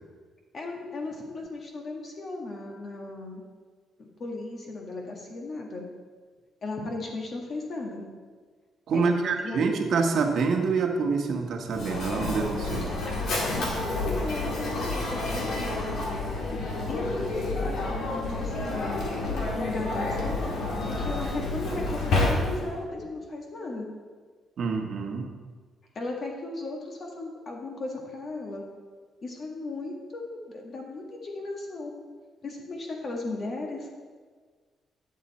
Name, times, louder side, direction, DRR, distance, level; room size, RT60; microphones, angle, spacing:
voice 1, 0.5-3.4 4.0-5.8 6.6-8.0 8.9-9.7 13.8-15.7 16.9-19.1 19.5-20.5 20.9-23.9 25.9-28.6 29.2-31.9 32.4-33.9, left 2 dB, 50° left, 0 dB, 1.7 m, -36 dB
voice 2, 8.9-12.9 24.6-25.3, right 4 dB, 60° right, 3 dB, 1.2 m, -26 dB
Mechanisms, 11.7-22.8, left 2 dB, 75° left, 2.0 m, -29 dB
10.0 x 6.7 x 4.2 m, 1.5 s
cardioid pair, 90°, 0 cm